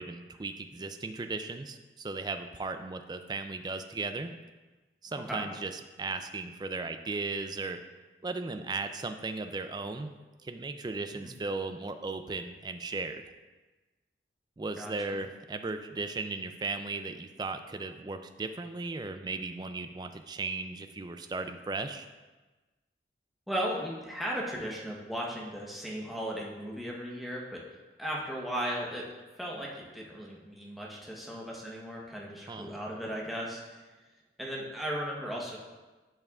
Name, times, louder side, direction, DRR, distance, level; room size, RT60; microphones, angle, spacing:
voice 1, 0.0-4.3 5.0-7.8 8.2-10.2 10.4-13.2 14.6-22.1 32.5-32.7, right 3 dB, 25° right, 8 dB, 0.3 m, -36 dB
voice 2, 14.8-15.2 23.5-29.1 29.4-33.8 34.4-35.6, equal, ahead, -4 dB, 0.9 m, -36 dB
10.5 x 5.6 x 2.4 m, 1.2 s
head